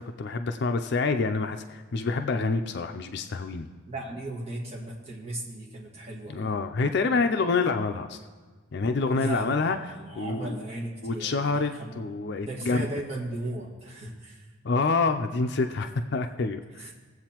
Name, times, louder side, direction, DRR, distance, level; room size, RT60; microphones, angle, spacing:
voice 1, 0.0-3.7 6.3-8.2 8.7-9.8 10.2-10.6 11.0-12.8 14.6-16.9, left 4 dB, 55° left, 6 dB, 0.4 m, -27 dB
voice 2, 3.9-6.5 9.1-12.0 12.4-14.5 16.7-16.9, right 1 dB, 30° right, -4 dB, 1.7 m, -36 dB
19.5 x 7.9 x 2.9 m, 1.5 s
head